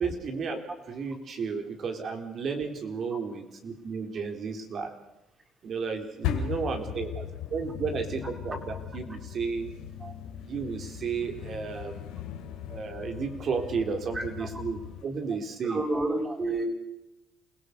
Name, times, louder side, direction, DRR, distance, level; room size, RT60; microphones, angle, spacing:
voice 1, 0.0-5.0 5.6-9.7 10.4-12.2 12.7-15.8, right 5 dB, 55° right, 4 dB, 3.9 m, -33 dB
sound 1, 6.2-15.0, left 9 dB, 90° left, 2.6 m, -38 dB
voice 2, 15.6-16.7, right 2 dB, 30° right, 3 dB, 6.5 m, -29 dB
27.5 x 17.5 x 6.9 m, 0.89 s
supercardioid pair, 80°, 0 cm